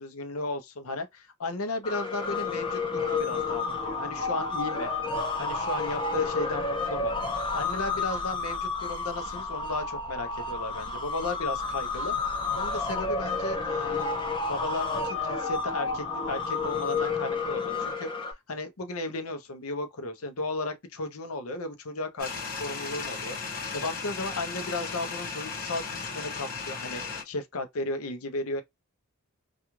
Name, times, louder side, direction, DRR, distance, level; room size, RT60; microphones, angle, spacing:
voice 1, 0.0-4.9 5.4-7.1 7.5-12.1 12.5-14.1 14.5-18.1 18.5-28.6, left 2 dB, 70° left, 0.7 m, -35 dB
sound 1, 1.8-18.3, left 4 dB, 20° left, 0.6 m, -31 dB
sound 2, 22.2-27.2, left 4 dB, 45° left, 0.9 m, -36 dB
2.4 x 2.3 x 3.0 m
head